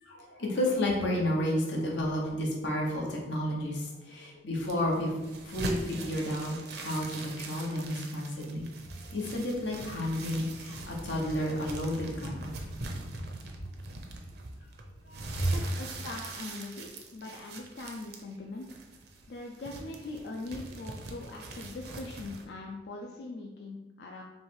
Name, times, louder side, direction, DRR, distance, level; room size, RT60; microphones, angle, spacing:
voice 1, 0.0-5.1 5.4-8.7 9.1-12.7 15.1-15.5, left 1 dB, 90° left, -1 dB, 1.0 m, -31 dB
sound 1, 4.5-22.4, right 2 dB, 60° right, 0.6 m, -43 dB
voice 2, 15.5-18.8 19.3-24.2, left 2 dB, 65° left, 0 dB, 0.4 m, -41 dB
3.2 x 3.1 x 4.4 m, 1.1 s
head